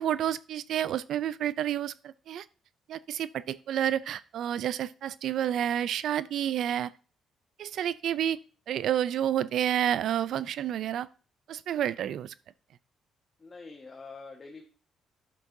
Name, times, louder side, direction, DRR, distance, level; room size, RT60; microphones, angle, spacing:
voice 1, 0.0-2.4 2.9-6.9 7.6-8.4 8.7-11.1 11.5-12.3, right 10 dB, 75° right, 18 dB, 0.4 m, -29 dB
voice 2, 13.4-14.6, left 4 dB, 35° left, 2 dB, 1.4 m, -45 dB
11.0 x 7.2 x 2.7 m, 0.36 s
cardioid pair, 90°, 0 cm